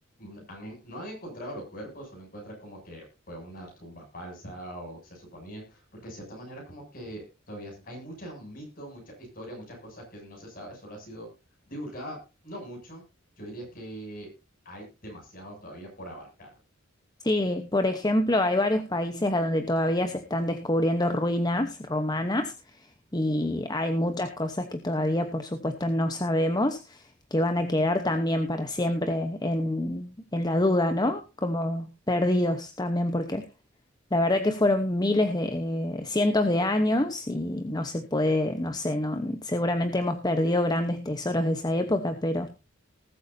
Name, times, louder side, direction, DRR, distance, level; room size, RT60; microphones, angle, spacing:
voice 1, 0.2-11.3 11.7-12.2 12.4-13.0 13.4-14.3 14.6-16.5, equal, 45° left, 0 dB, 7.6 m, -42 dB
voice 2, 17.2-22.5 23.1-27.0 27.3-33.5 34.1-42.5, left 1 dB, 20° left, 7 dB, 1.0 m, -26 dB
20.0 x 8.5 x 2.7 m, 0.29 s
head